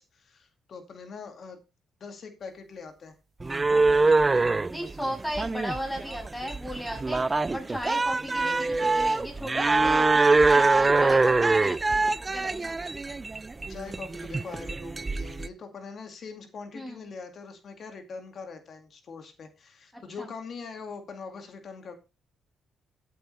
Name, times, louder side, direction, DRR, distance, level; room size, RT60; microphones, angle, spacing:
voice 1, 0.0-1.6 2.0-3.1 3.7-4.2 13.7-21.9, left 5 dB, 55° left, 6 dB, 2.3 m, -42 dB
sound 1, 3.4-15.5, right 3 dB, 25° right, 0.6 m, -24 dB
voice 2, 4.7-12.7 16.7-17.1 20.2-20.3, equal, 5° left, 1 dB, 7.0 m, -36 dB
13.0 x 8.6 x 3.4 m, 0.29 s
cardioid pair, 90°, 0 cm